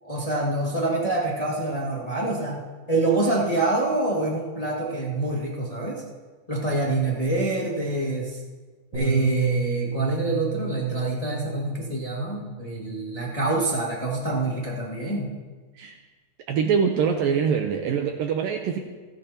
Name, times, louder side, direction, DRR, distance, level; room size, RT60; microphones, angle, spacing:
voice 1, 0.0-2.6 2.9-6.0 6.5-8.4 8.9-15.3, right 2 dB, 55° left, -5 dB, 0.4 m, -26 dB
Bass guitar, 8.9-13.4 14.2-15.2, right 5 dB, 50° right, 6.0 m, -32 dB
voice 2, 16.5-18.8, right 6 dB, 80° right, 4 dB, 2.0 m, -24 dB
29.5 x 10.5 x 2.9 m, 1.3 s
omnidirectional pair, 5.0 m